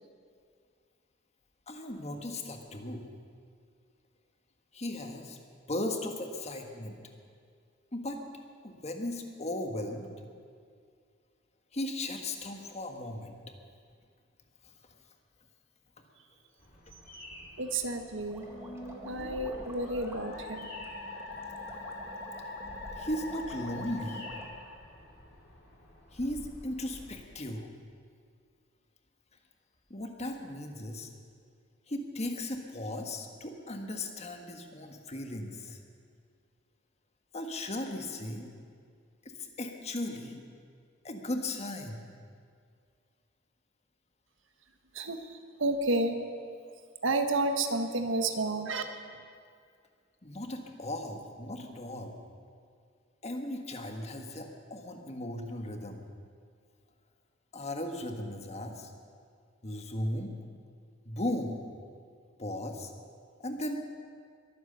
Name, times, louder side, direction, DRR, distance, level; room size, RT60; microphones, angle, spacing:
voice 1, 1.7-3.1 4.7-5.4 5.7-7.0 7.9-8.2 8.6-10.1 11.7-13.6 14.6-14.7 23.0-24.3 26.1-27.7 29.9-31.1 31.9-35.8 37.3-38.5 39.6-40.4 41.0-42.0 50.2-52.1 53.2-56.1 57.5-58.9 59.6-60.3 61.0-61.6 62.4-62.9 63.4-63.8, left 1 dB, 35° left, 4 dB, 1.5 m, -36 dB
Bird vocalization bird call bird song, 16.6-27.1, equal, 50° left, 4.7 m, -51 dB
voice 2, 17.6-18.5 19.0-20.7 44.9-46.4 47.0-48.8, right 2 dB, 80° right, 6 dB, 1.4 m, -31 dB
sound 1, 18.3-24.5, equal, 15° right, 1.7 m, -49 dB
Musical instrument, 18.5-25.3, left 2 dB, 85° left, 3.2 m, -43 dB
22.5 x 9.4 x 6.9 m, 2.2 s
head